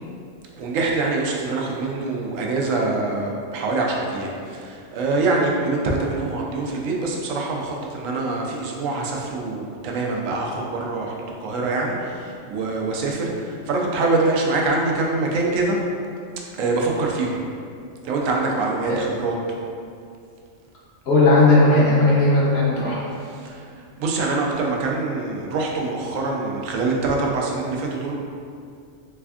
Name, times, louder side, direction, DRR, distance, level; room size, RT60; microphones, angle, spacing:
voice 1, 0.5-15.8 16.6-17.4 18.0-19.4 23.4-23.6 24.0-28.1, right 3 dB, 85° right, -1 dB, 1.0 m, -24 dB
voice 2, 21.1-23.0, left 2 dB, 60° left, -7 dB, 1.0 m, -16 dB
3.4 x 3.3 x 2.3 m, 2.4 s
omnidirectional pair, 1.3 m